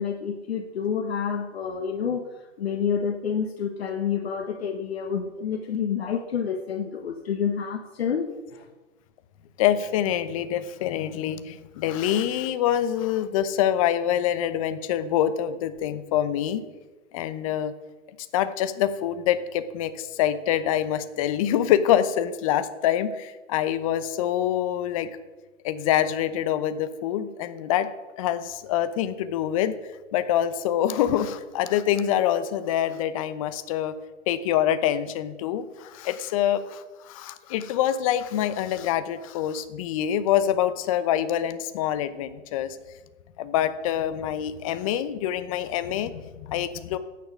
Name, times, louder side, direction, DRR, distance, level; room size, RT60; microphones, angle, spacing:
voice 1, 0.0-2.2 2.6-8.6, left 7 dB, 55° left, 4 dB, 1.4 m, -28 dB
voice 2, 9.6-16.6 17.1-17.7 18.3-25.1 25.6-27.9 28.2-29.7 30.1-34.0 34.3-42.8 43.4-47.0, left 10 dB, 30° left, 12 dB, 0.8 m, -25 dB
16.0 x 9.3 x 4.8 m, 1.2 s
hypercardioid pair, 135°, 37 cm